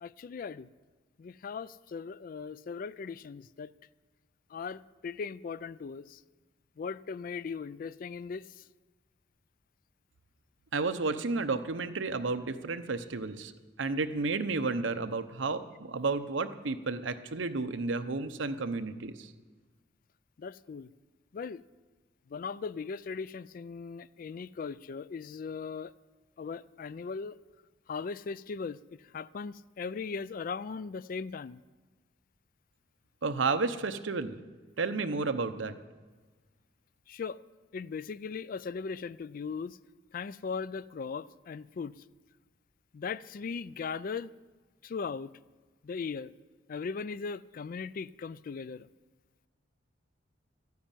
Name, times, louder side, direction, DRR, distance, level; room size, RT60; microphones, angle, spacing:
voice 1, 0.0-0.7 1.2-3.7 4.5-6.2 6.8-8.6 20.4-20.9 21.3-21.6 22.3-25.9 26.4-27.4 27.9-28.8 29.1-31.6 37.1-37.4 37.7-39.8 40.1-42.0 42.9-44.3 44.8-45.3 45.8-46.3 46.7-48.9, left 5 dB, 45° left, 0.3 m, -38 dB
voice 2, 10.7-13.5 13.8-19.3 33.2-34.4 34.8-35.7, right 3 dB, 90° right, 0.8 m, -32 dB
13.0 x 9.5 x 8.9 m
head